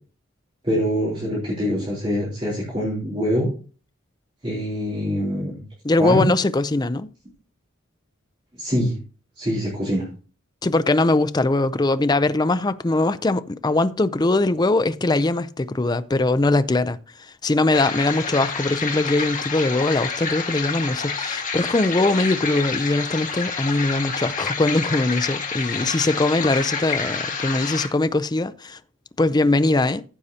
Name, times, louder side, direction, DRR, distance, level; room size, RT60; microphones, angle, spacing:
voice 1, 0.6-3.5 4.4-5.6 6.0-6.3 8.6-8.9 9.4-10.0, equal, 25° right, 3.4 m, -24 dB
voice 2, 5.8-7.1 10.6-28.8 29.2-30.0, left 2 dB, 20° left, 0.4 m, -21 dB
sound 1, 17.7-27.9, left 5 dB, 40° left, 1.6 m, -28 dB
14.5 x 6.7 x 2.8 m
head